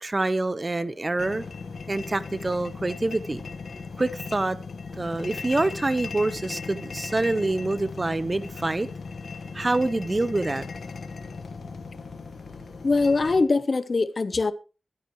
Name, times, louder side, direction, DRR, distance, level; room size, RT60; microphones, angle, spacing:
voice 1, 0.0-1.4 1.9-3.4 4.0-4.6 5.0-8.9 9.5-10.7, right 2 dB, 35° right, 0.7 m, -26 dB
sound 1, 1.2-13.4, left 4 dB, 80° left, 1.3 m, -37 dB
voice 2, 12.8-14.5, left 3 dB, 55° left, 0.8 m, -22 dB
14.0 x 12.5 x 3.0 m
cardioid pair, 60°, 0 cm